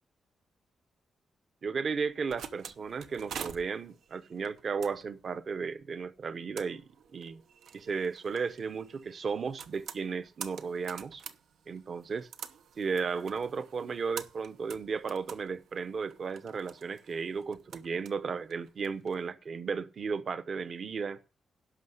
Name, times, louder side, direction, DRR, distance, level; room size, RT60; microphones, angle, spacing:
voice 1, 1.6-7.4 7.7-11.2 11.7-12.3 12.8-21.2, right 5 dB, 45° right, 0.8 m, -34 dB
sound 1, 2.0-19.2, right 8 dB, 85° right, 0.9 m, -48 dB
11.5 x 6.0 x 7.9 m
wide cardioid pair, 150°, 0 cm